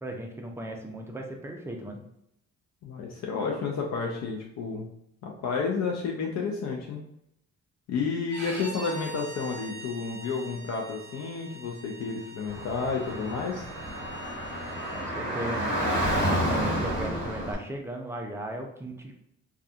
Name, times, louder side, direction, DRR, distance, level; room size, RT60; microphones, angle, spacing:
voice 1, 0.0-2.0 14.9-15.8 16.5-19.1, right 1 dB, 10° right, 1 dB, 0.4 m, -36 dB
voice 2, 2.8-4.9 5.2-7.0 7.9-13.7, left 5 dB, 60° left, 0 dB, 0.5 m, -31 dB
Bowed string instrument, 8.3-15.0, right 2 dB, 40° right, 0.9 m, -43 dB
Car / Traffic noise roadway noise, 12.5-17.5, equal, 35° left, 1.2 m, -30 dB
2.6 x 2.4 x 2.3 m, 0.78 s
cardioid pair, 90°, 30 cm